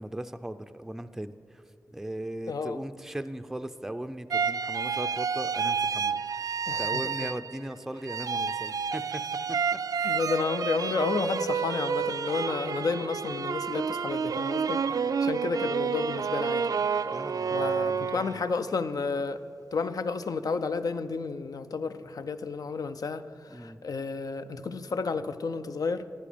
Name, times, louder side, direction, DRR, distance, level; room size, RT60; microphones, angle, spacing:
voice 1, 0.0-1.3 1.9-9.2 9.5-10.2 17.1-18.4 23.5-23.8, right 1 dB, 5° right, 10 dB, 0.4 m, -38 dB
voice 2, 2.5-2.8 6.7-7.1 10.0-16.7 17.5-19.4 19.7-26.0, left 4 dB, 70° left, 11 dB, 0.5 m, -31 dB
sound 1, 4.3-7.7 8.0-18.7, right 6 dB, 70° right, 0.4 m, -29 dB
15.5 x 11.0 x 5.1 m, 2.4 s
wide cardioid pair, 90°, 6 cm